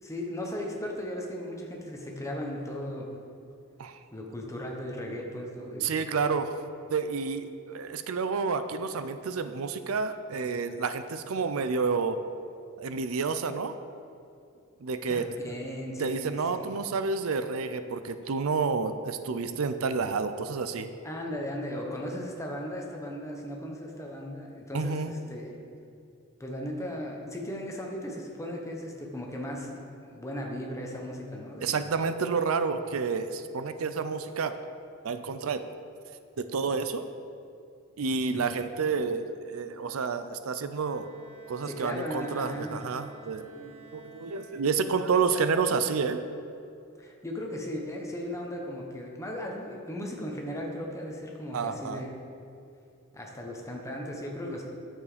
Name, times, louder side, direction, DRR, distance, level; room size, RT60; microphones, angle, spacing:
voice 1, 0.0-3.2 4.1-6.0 15.1-16.8 21.0-25.6 26.4-31.9 38.3-38.4 41.6-42.8 43.4-43.8 45.3-45.5 47.0-52.2 53.1-54.7, equal, 15° left, 0 dB, 1.2 m, -37 dB
voice 2, 5.8-6.5 6.9-12.2 12.8-13.8 14.8-15.3 16.0-20.9 24.7-25.2 31.6-34.6 35.0-35.6 36.4-37.0 38.0-41.1 41.5-43.5 43.9-46.2 51.5-52.0, right 5 dB, 75° right, 10 dB, 0.5 m, -29 dB
Bowed string instrument, 40.7-45.2, right 2 dB, 25° right, 1.2 m, -54 dB
9.4 x 7.3 x 5.1 m, 2.6 s
head